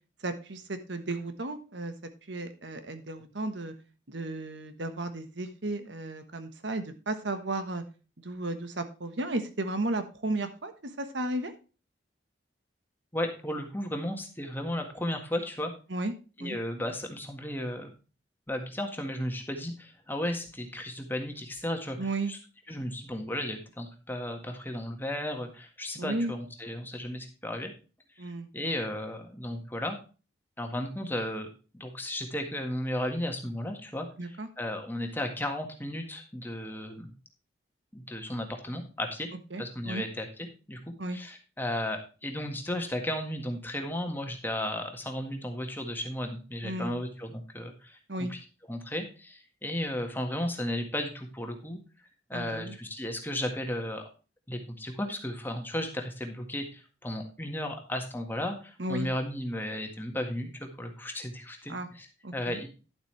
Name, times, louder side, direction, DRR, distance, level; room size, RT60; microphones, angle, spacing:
voice 1, 0.2-1.9 2.3-3.7 4.1-7.8 8.2-10.7 11.0-11.5 15.9-16.1 16.4-16.6 22.0-22.3 26.0-26.3 28.2-28.5 34.2-34.5 39.5-40.0 41.0-41.2 46.6-46.9 48.1-48.3 52.3-52.8 58.8-59.1 61.7-61.9 62.2-62.6, right 2 dB, 75° right, 9 dB, 1.3 m, -34 dB
voice 2, 13.1-15.7 16.4-17.9 18.5-22.4 22.7-27.7 28.2-30.0 30.6-31.5 31.7-37.1 37.9-39.3 39.6-40.8 41.1-48.4 48.7-51.8 52.3-54.0 54.5-62.1 62.3-62.7, left 1 dB, 10° left, 4 dB, 1.7 m, -34 dB
11.5 x 8.1 x 3.3 m, 0.33 s
head